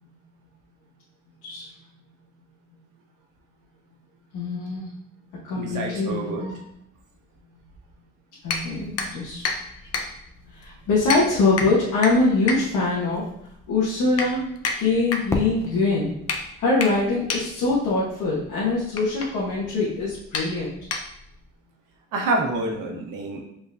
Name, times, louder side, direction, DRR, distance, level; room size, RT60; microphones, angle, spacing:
voice 1, 4.3-4.9 5.4-6.5 8.4-9.4 9.7-10.1 10.5-14.4 14.8-16.1 16.6-20.7, left 3 dB, 85° left, -6 dB, 1.2 m, -23 dB
voice 2, 5.5-6.5 22.1-23.4, right 2 dB, 85° right, 0 dB, 1.0 m, -27 dB
sound 1, 8.4-21.5, left 4 dB, 55° left, 0.8 m, -32 dB
Fireworks, 15.3-18.2, left 1 dB, 10° left, 0.7 m, -34 dB
5.2 x 3.8 x 2.6 m, 0.77 s
cardioid pair, 90°, 30 cm